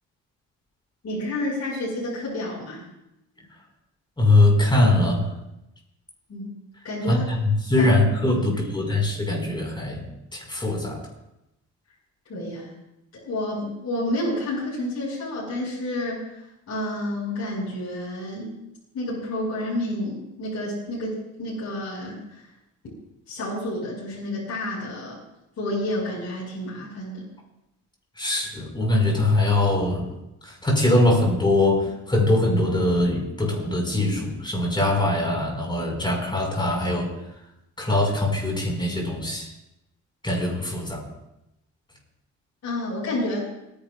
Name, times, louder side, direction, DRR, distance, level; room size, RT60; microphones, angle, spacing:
voice 1, 1.0-2.8 6.3-6.6 6.8-7.2 7.8-7.9 8.3-8.8 12.3-12.7 13.2-16.2 16.7-18.5 18.9-22.4 23.3-25.2 25.6-27.2 42.6-43.5, left 1 dB, 60° left, -6 dB, 5.5 m, -30 dB
voice 2, 4.2-5.3 7.1-10.0 10.3-11.0 28.2-30.0 30.5-37.1 37.8-39.5 40.2-41.0, left 2 dB, 15° left, 0 dB, 5.2 m, -22 dB
30.0 x 10.5 x 2.5 m, 0.87 s
cardioid pair, 90°, 30 cm